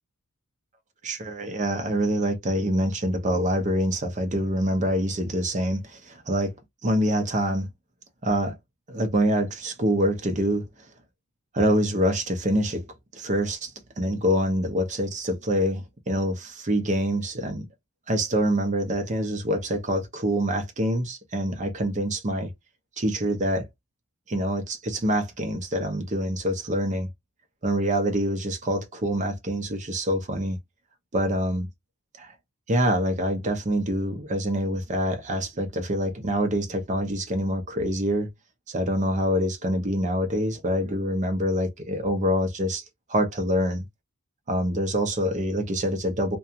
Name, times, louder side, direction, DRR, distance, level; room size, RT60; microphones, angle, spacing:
voice 1, 1.0-6.5 6.8-7.7 8.2-8.6 8.9-10.7 11.5-12.9 13.1-17.7 18.1-22.5 23.0-23.7 24.3-27.1 27.6-30.6 31.1-31.7 32.2-32.3 32.7-38.3 38.7-42.8 43.1-43.9 44.5-46.4, equal, 35° right, 0.7 m, -25 dB
2.4 x 2.2 x 2.8 m
head